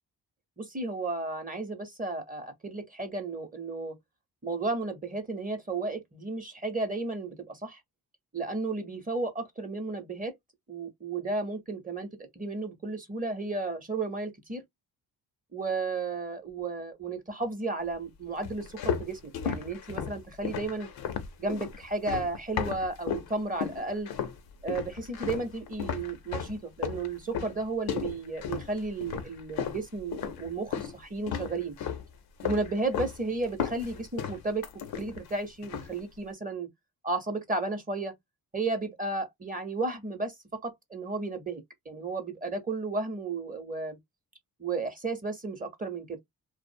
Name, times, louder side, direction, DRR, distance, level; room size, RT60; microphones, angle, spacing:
voice 1, 0.6-4.0 4.4-7.8 8.3-10.3 10.7-14.6 15.5-20.9 21.4-24.1 24.6-31.8 32.4-34.6 35.0-36.7 37.0-38.1 38.5-40.3 40.6-41.6 41.9-44.0 44.6-46.2, right 3 dB, 20° right, 0.7 m, -33 dB
sound 1, 18.4-23.3 23.6-24.4 24.7-31.0 31.3-32.1 32.4-33.2 33.4-35.3 35.6-36.0, left 8 dB, 75° left, 0.6 m, -34 dB
2.4 x 2.0 x 2.5 m
cardioid pair, 105°, 38 cm